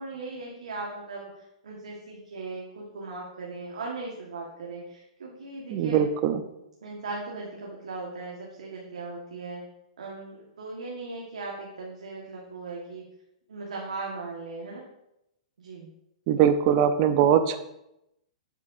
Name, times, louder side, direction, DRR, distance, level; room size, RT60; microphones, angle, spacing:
voice 1, 0.0-6.0 6.8-9.7 10.0-13.0 13.5-14.8 15.6-15.9, right 3 dB, 85° right, -3 dB, 1.5 m, -38 dB
voice 2, 5.7-6.4 16.3-17.6, right 9 dB, 40° right, 10 dB, 0.6 m, -21 dB
7.4 x 7.4 x 2.7 m, 0.85 s
hypercardioid pair, 140°, 4 cm